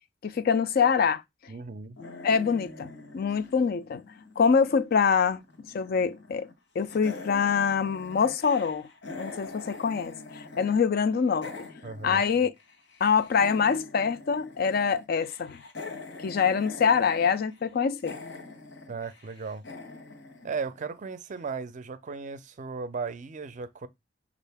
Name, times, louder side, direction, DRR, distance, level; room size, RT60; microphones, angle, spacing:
voice 1, 0.2-1.5 2.2-4.0 4.4-5.4 5.7-6.5 6.8-8.9 9.2-11.7 12.0-12.5 13.0-15.6 16.2-18.2, left 6 dB, 55° left, 0.4 m, -25 dB
voice 2, 1.5-2.0 11.8-12.2 18.9-19.6 20.4-23.9, right 5 dB, 40° right, 0.4 m, -36 dB
sound 1, 2.0-5.0 5.3-6.6 6.9-10.8 11.1-21.2, left 3 dB, 70° left, 1.1 m, -44 dB
6.3 x 2.5 x 3.4 m
head